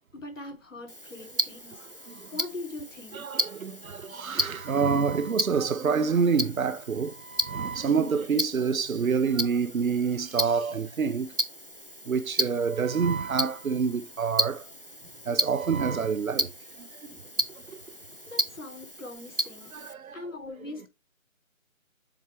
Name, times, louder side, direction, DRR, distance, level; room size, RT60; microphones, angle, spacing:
voice 1, 0.1-1.8 2.3-3.3 15.0-15.1 17.0-17.2 18.3-19.7 20.1-20.9, left 2 dB, 65° left, 3.4 m, -41 dB
Tick-tock, 0.9-19.9, equal, 45° right, 0.4 m, -34 dB
voice 2, 3.1-11.3 12.1-14.6 15.3-16.5 19.7-20.2, right 5 dB, 75° right, 0.8 m, -27 dB
7.2 x 4.3 x 3.3 m
figure-of-eight pair, 180°, 41 cm